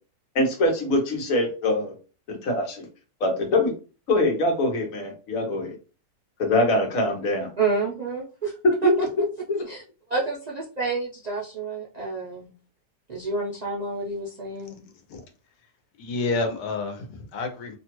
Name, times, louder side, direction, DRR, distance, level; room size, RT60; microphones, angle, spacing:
voice 1, 0.3-1.9 2.3-2.8 3.2-3.7 4.1-5.7 6.4-7.5 8.6-9.7, left 1 dB, 65° left, 1.2 m, -23 dB
voice 2, 7.6-8.5 8.8-8.9 9.7-9.8 10.1-12.5 13.1-14.8, right 4 dB, 75° right, 0.3 m, -28 dB
voice 3, 14.8-15.2 16.0-17.8, left 3 dB, 80° left, 1.2 m, -29 dB
2.9 x 2.3 x 2.9 m
omnidirectional pair, 1.6 m